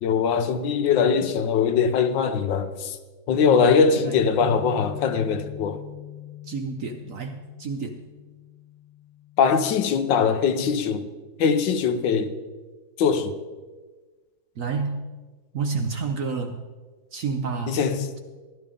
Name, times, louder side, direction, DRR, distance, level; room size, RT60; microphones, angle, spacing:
voice 1, 0.0-3.0 3.3-5.8 9.4-11.1 11.4-12.3 13.0-13.3 17.7-18.1, left 6 dB, 80° left, 1.5 m, -21 dB
voice 2, 3.6-4.2 6.4-8.0 14.6-15.0 15.5-16.6 17.1-17.8, right 4 dB, 60° right, 0.9 m, -29 dB
Bass guitar, 4.4-10.7, left 13 dB, 50° left, 1.5 m, -42 dB
15.0 x 11.5 x 3.8 m
omnidirectional pair, 2.0 m